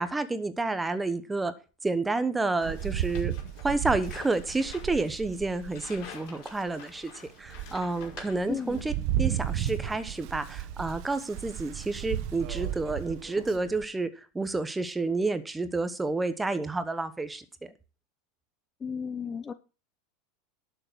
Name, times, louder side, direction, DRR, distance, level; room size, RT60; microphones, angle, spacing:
voice 1, 0.0-1.5 1.8-3.3 3.6-7.1 7.4-8.9 9.2-17.7, right 3 dB, 10° right, 12 dB, 1.0 m, -30 dB
sound 1, 2.6-9.0 9.3-10.2, left 8 dB, 55° left, 5.4 m, -49 dB
Rain, 2.6-6.1 6.7-6.8 7.3-13.9, right 12 dB, 50° right, 1.0 m, -34 dB
voice 2, 8.5-8.8 18.8-19.5, left 6 dB, 20° left, 12 dB, 0.6 m, -34 dB
12.0 x 6.7 x 6.1 m, 0.34 s
supercardioid pair, 150°, 0 cm